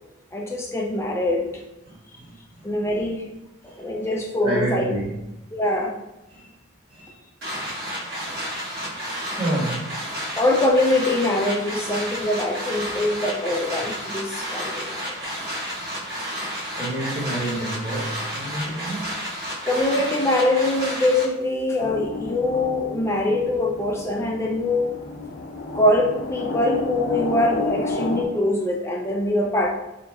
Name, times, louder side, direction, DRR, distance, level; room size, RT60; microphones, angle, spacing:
voice 1, 0.3-1.5 2.6-3.2 3.6-4.9 5.5-5.9 10.4-15.3 19.6-25.0 25.7-29.7, left 1 dB, 15° left, -1 dB, 0.5 m, -23 dB
voice 2, 1.8-2.8 3.6-4.1 4.4-5.2 6.3-6.5 6.9-7.1 7.5-10.3 14.6-14.8 15.2-15.4 15.8-16.1 16.4-19.2, right 1 dB, 25° right, -6 dB, 1.1 m, -31 dB
sound 1, 7.4-21.3, equal, 55° right, 1.1 m, -31 dB
sound 2, 21.8-28.2, left 3 dB, 85° left, 0.5 m, -31 dB
3.9 x 2.9 x 2.3 m, 0.95 s
head